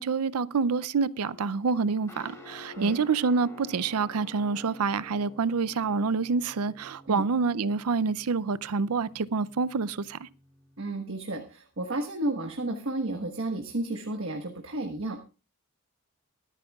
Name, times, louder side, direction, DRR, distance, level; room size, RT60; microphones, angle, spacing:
voice 1, 0.0-10.3, right 4 dB, 80° right, 0.5 m, -27 dB
sound 1, 1.2-5.5, left 10 dB, 20° right, 5.5 m, -54 dB
Guitar, 2.1-10.9, right 1 dB, 15° left, 2.7 m, -52 dB
voice 2, 10.8-15.2, right 2 dB, 65° right, 1.4 m, -32 dB
23.5 x 9.1 x 2.3 m
head